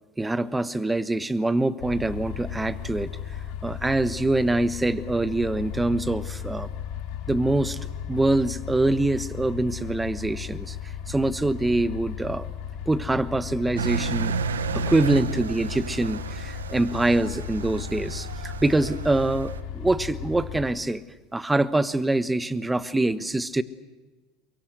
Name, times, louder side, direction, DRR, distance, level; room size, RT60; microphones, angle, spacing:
voice 1, 0.2-3.1 3.6-6.7 7.3-7.8 8.1-10.8 11.1-12.5 12.9-14.3 14.7-21.0 21.3-23.6, right 2 dB, 10° right, 16 dB, 1.2 m, -24 dB
sound 1, 1.8-20.7, left 8 dB, 65° left, 3.2 m, -36 dB
Engine, 13.8-19.6, right 5 dB, 90° right, 0.9 m, -32 dB
23.0 x 23.0 x 8.2 m, 1.2 s
hypercardioid pair, 80°, 0 cm